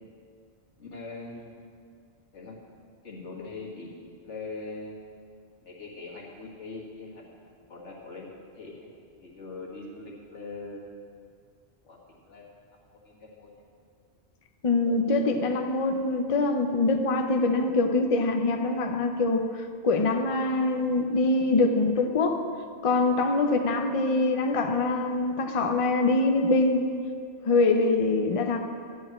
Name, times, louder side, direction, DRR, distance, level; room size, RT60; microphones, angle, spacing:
voice 1, 0.8-1.5 2.3-2.6 3.0-3.9 4.2-5.0 5.6-8.3 8.6-8.9 9.2-10.8 11.9-12.0 12.3-12.6 12.9-13.5, left 3 dB, 90° left, -3 dB, 2.0 m, -41 dB
voice 2, 14.6-22.5 22.8-26.9 27.4-28.6, left 3 dB, 35° left, 4 dB, 0.6 m, -24 dB
12.0 x 4.8 x 8.5 m, 2.2 s
omnidirectional pair, 1.2 m